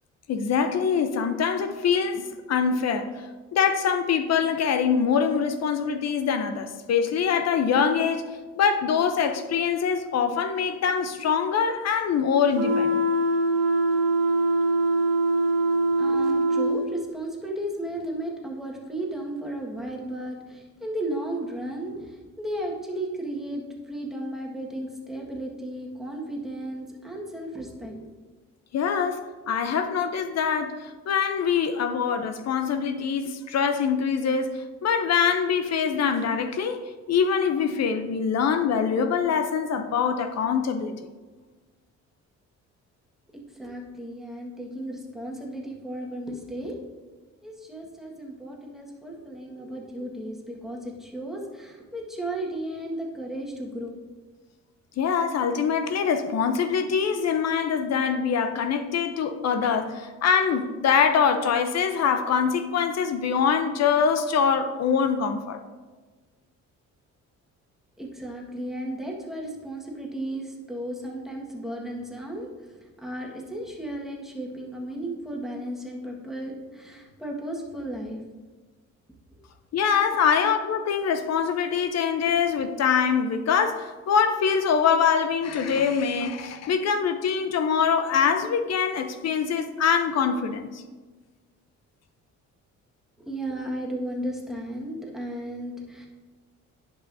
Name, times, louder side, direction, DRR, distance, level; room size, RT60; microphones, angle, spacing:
voice 1, 0.3-3.1 3.5-8.2 8.6-13.1 28.7-36.8 37.1-40.9 55.0-65.6 79.7-90.8, left 6 dB, 60° left, 8 dB, 0.7 m, -24 dB
sound 1, 12.5-16.8, right 2 dB, 60° right, 1.0 m, -23 dB
voice 2, 16.0-28.1 43.3-46.7 47.4-53.9 68.0-72.5 73.0-78.2 79.3-79.4 80.2-80.4 93.2-96.1, right 1 dB, ahead, -2 dB, 1.5 m, -34 dB
10.5 x 5.6 x 2.7 m, 1.3 s
cardioid pair, 90°, 30 cm